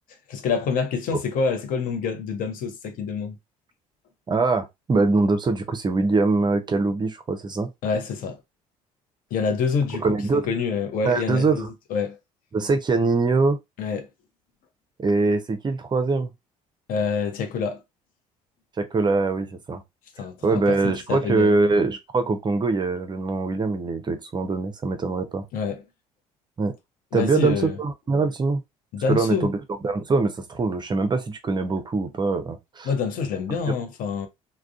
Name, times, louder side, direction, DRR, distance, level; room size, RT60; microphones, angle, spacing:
voice 1, 0.3-3.3 7.8-8.4 9.3-10.1 10.3-11.6 11.9-12.2 13.8-14.1 16.9-17.8 20.2-21.6 25.5-25.8 27.1-27.8 28.9-29.5 32.8-34.3, left 5 dB, 50° left, 0.7 m, -26 dB
voice 2, 4.3-7.7 10.0-10.5 11.0-11.7 12.5-13.6 15.0-16.3 18.8-19.8 20.4-25.4 26.6-26.7 27.1-28.6 29.1-29.6 29.8-32.9, right 3 dB, 25° right, 0.6 m, -23 dB
3.5 x 2.1 x 2.4 m
figure-of-eight pair, 55°, 19 cm